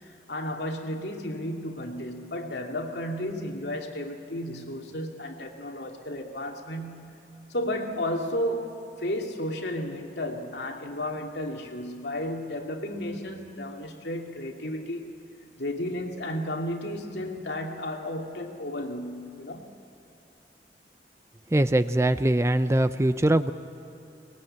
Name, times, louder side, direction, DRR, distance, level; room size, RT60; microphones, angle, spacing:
voice 1, 0.0-15.1 15.6-19.7, left 1 dB, 70° left, 1 dB, 2.5 m, -33 dB
voice 2, 21.5-23.5, right 1 dB, 15° right, 12 dB, 0.5 m, -22 dB
23.0 x 20.0 x 8.8 m, 2.9 s
head